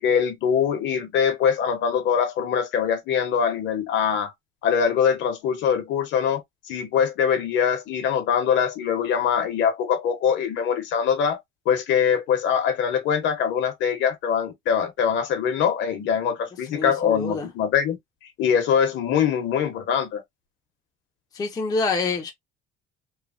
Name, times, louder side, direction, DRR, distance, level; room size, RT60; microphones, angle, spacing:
voice 1, 0.0-4.3 4.6-6.4 6.7-11.4 11.7-18.0 18.4-20.2, left 7 dB, 60° left, 0.9 m, -23 dB
voice 2, 16.7-17.5 21.3-22.3, left 3 dB, 20° left, 0.5 m, -26 dB
3.2 x 2.0 x 2.4 m
cardioid pair, 160°, 21 cm